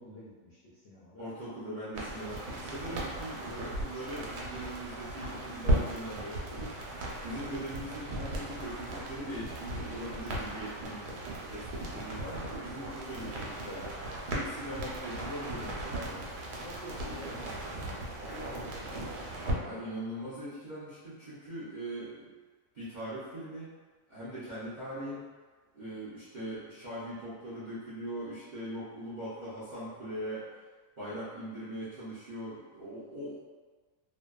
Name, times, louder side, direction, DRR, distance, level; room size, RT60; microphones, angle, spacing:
voice 1, 0.0-1.3 16.6-19.8, left 1 dB, 75° left, -9 dB, 0.5 m, -49 dB
voice 2, 1.2-6.8 7.2-11.1 11.5-14.0 14.3-16.3 19.6-22.3 22.7-23.7 24.1-25.2 25.7-30.4 31.0-33.4, right 1 dB, 60° right, -13 dB, 0.4 m, -41 dB
sound 1, 1.9-19.5, right 1 dB, 85° right, 1.1 m, -37 dB
2.6 x 2.1 x 2.3 m, 1.4 s
omnidirectional pair, 1.6 m